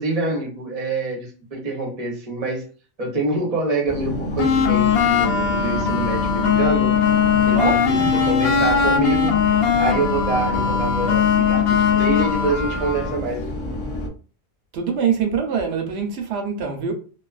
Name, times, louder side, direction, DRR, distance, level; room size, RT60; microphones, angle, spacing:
voice 1, 0.0-2.6 3.0-7.0 7.4-13.5, right 2 dB, 40° right, 0.8 m, -26 dB
sound 1, 3.9-14.1, left 1 dB, 40° left, 0.5 m, -29 dB
sound 2, 4.4-13.2, left 7 dB, 70° left, 0.8 m, -20 dB
voice 2, 7.5-8.3 14.7-16.9, right 6 dB, 85° right, 0.9 m, -24 dB
2.5 x 2.3 x 2.3 m
omnidirectional pair, 1.1 m